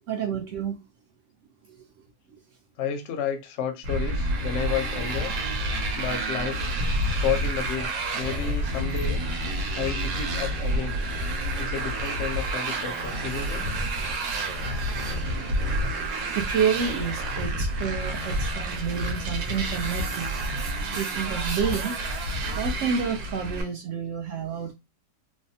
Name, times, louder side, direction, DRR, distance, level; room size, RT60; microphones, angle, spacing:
voice 1, 0.1-0.7 14.0-14.2 14.6-14.7 15.8-20.3 20.9-22.0 22.5-24.7, right 7 dB, 75° right, 0.7 m, -29 dB
voice 2, 2.8-5.3 6.0-6.6 7.2-9.2 9.8-11.0 11.6-13.6, left 8 dB, 65° left, 0.7 m, -31 dB
Motorcycle, 3.8-23.6, right 1 dB, 90° right, 1.4 m, -29 dB
3.3 x 2.0 x 2.7 m
omnidirectional pair, 1.9 m